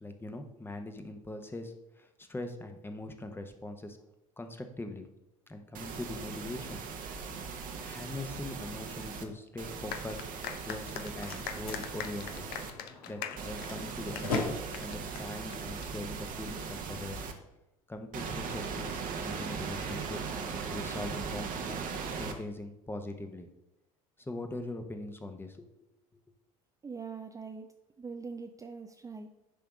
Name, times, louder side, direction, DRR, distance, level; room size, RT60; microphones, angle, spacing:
voice 1, 0.0-4.0 4.4-5.1 5.5-7.2 7.8-10.3 10.7-12.4 13.1-17.2 17.9-20.3 20.7-23.5 24.2-25.7, left 2 dB, 10° left, 6 dB, 1.0 m, -41 dB
sound 1, 5.7-9.2 9.6-12.7 13.4-17.3 18.1-22.3, right 5 dB, 45° right, 1.1 m, -39 dB
sound 2, 9.9-15.9, left 9 dB, 60° left, 0.7 m, -42 dB
Slam, 10.7-16.7, left 2 dB, 80° left, 1.7 m, -40 dB
voice 2, 26.8-27.7 28.0-29.3, right 5 dB, 20° right, 5 dB, 0.5 m, -42 dB
10.0 x 3.4 x 5.1 m, 0.92 s
hypercardioid pair, 65°, 18 cm